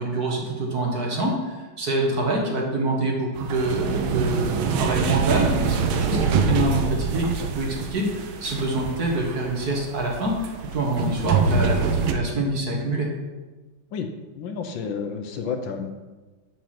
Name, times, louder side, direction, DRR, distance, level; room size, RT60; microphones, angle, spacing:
voice 1, 0.0-13.1, right 2 dB, 50° right, -1 dB, 1.9 m, -26 dB
sound 1, 3.4-12.1, right 5 dB, 75° right, 1.5 m, -25 dB
voice 2, 14.4-16.1, left 6 dB, 70° left, 6 dB, 1.4 m, -31 dB
6.9 x 6.4 x 5.9 m, 1.2 s
omnidirectional pair, 2.3 m